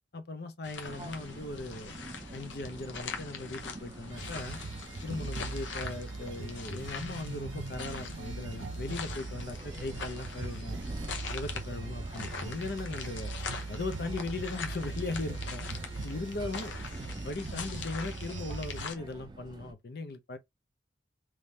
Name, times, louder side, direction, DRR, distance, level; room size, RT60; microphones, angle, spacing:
voice 1, 0.1-1.9 2.3-4.6 5.0-10.8 11.3-13.3 13.7-15.7 16.0-16.7 17.2-20.4, left 3 dB, 55° left, 0.6 m, -38 dB
sound 1, 0.6-18.9, left 5 dB, 85° left, 0.8 m, -43 dB
sound 2, 0.8-19.7, right 2 dB, 25° right, 0.5 m, -47 dB
sound 3, 4.1-18.8, right 3 dB, 80° right, 0.6 m, -40 dB
3.6 x 3.1 x 2.7 m
head